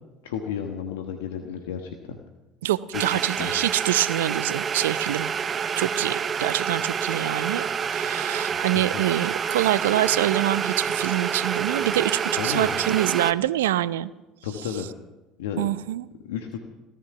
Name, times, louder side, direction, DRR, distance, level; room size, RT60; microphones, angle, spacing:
voice 1, 0.2-2.2 2.9-3.1 3.3-3.5 8.5-9.0 12.4-12.8 14.4-14.9 15.4-15.6 16.2-16.6, left 8 dB, 80° left, 4 dB, 1.3 m, -32 dB
voice 2, 2.6-5.3 5.8-14.1 15.6-16.1, right 14 dB, 80° right, 17 dB, 0.5 m, -25 dB
sound 1, 2.9-13.3, right 7 dB, 40° right, 0.7 m, -28 dB
16.5 x 14.0 x 5.9 m, 1.1 s
hypercardioid pair, 65°, 0 cm